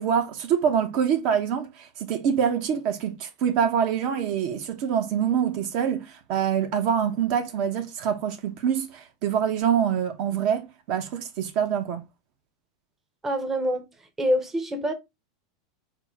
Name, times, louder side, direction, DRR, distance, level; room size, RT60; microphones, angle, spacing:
voice 1, 0.0-12.0, right 8 dB, 55° right, 0.8 m, -25 dB
voice 2, 13.2-14.9, equal, 15° right, 0.7 m, -26 dB
4.6 x 2.1 x 3.6 m
supercardioid pair, 130°, 2 cm